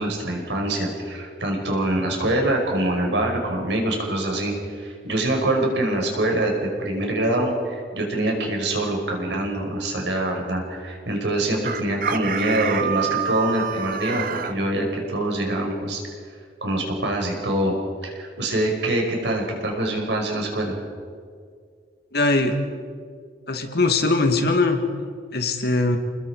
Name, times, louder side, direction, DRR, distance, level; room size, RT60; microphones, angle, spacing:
voice 1, 0.0-16.0 16.6-17.7 18.0-20.8, right 1 dB, 80° right, 1 dB, 5.3 m, -24 dB
Chicken rooster, 11.6-14.5, right 8 dB, 50° right, 1.0 m, -27 dB
voice 2, 22.1-22.6 23.5-24.8 25.3-26.0, left 3 dB, 60° left, 5 dB, 2.2 m, -20 dB
29.0 x 20.5 x 4.9 m, 2.1 s
head